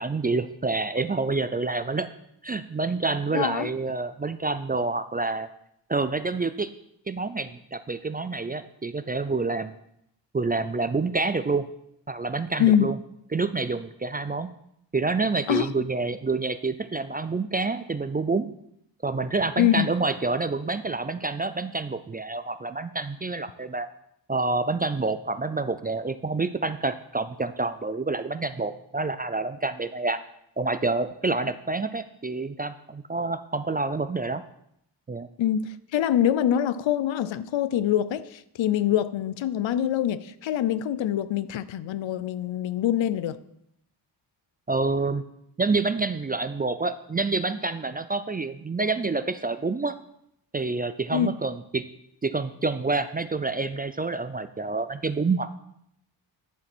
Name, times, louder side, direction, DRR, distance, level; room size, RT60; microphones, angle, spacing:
voice 1, 0.0-2.1 2.4-5.5 5.9-6.7 7.1-9.8 10.3-11.7 12.1-13.0 13.3-14.5 14.9-18.5 19.0-23.9 24.3-30.2 30.6-34.4 35.1-35.3 44.7-45.2 45.6-50.0 50.5-51.8 52.2-55.5, right 3 dB, 20° right, 11 dB, 0.3 m, -27 dB
voice 2, 3.3-3.7 12.6-12.9 15.5-15.7 19.6-19.9 35.4-43.4 51.1-51.4, left 10 dB, 80° left, 16 dB, 0.6 m, -24 dB
10.5 x 7.2 x 4.4 m, 0.77 s
wide cardioid pair, 105°, 46 cm